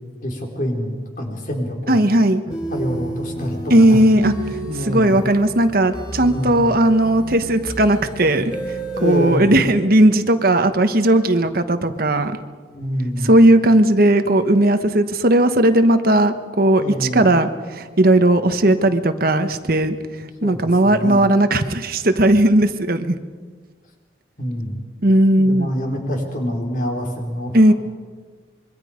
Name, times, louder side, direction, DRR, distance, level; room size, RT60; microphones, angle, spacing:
voice 1, 0.2-2.0 2.5-5.2 6.2-6.7 9.0-9.5 12.7-13.3 16.8-17.2 20.4-21.3 24.4-24.8 25.4-27.7, equal, 50° left, 1 dB, 4.4 m, -26 dB
voice 2, 1.9-2.4 3.7-4.3 4.9-8.5 9.0-12.3 13.2-19.9 20.4-23.2 25.0-25.7 27.5-27.7, right 1 dB, 55° right, 8 dB, 1.2 m, -16 dB
sound 1, 2.5-9.4, right 1 dB, 25° left, 6.2 m, -31 dB
26.0 x 23.5 x 5.2 m, 1.5 s
head